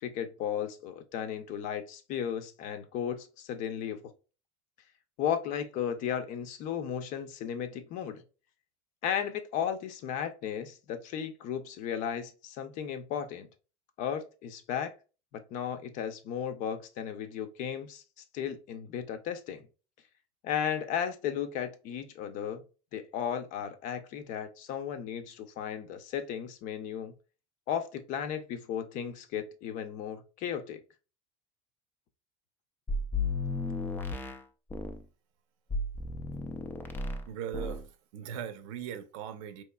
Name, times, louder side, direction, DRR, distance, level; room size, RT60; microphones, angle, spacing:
voice 1, 0.0-4.0 5.2-8.2 9.0-13.5 14.0-14.9 15.3-18.0 18.3-19.6 20.4-22.6 22.9-27.1 27.7-30.8, left 8 dB, 55° left, 0.6 m, -35 dB
sound 1, 32.9-35.0 35.7-37.3 37.5-37.9, left 2 dB, 10° left, 0.3 m, -34 dB
voice 2, 37.3-37.8 38.1-39.6, right 9 dB, 85° right, 0.7 m, -39 dB
4.2 x 3.1 x 2.2 m
cardioid pair, 145°, 16 cm